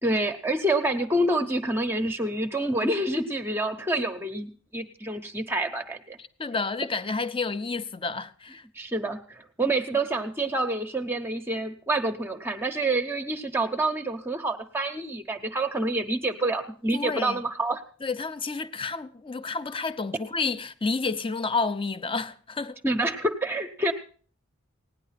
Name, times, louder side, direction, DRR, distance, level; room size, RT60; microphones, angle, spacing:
voice 1, 0.0-6.2 8.8-17.8 22.8-23.9, right 2 dB, 10° right, 0.8 m, -27 dB
voice 2, 6.4-8.6 16.9-17.4 18.0-22.8, left 4 dB, 25° left, 0.6 m, -30 dB
17.5 x 9.8 x 5.8 m
head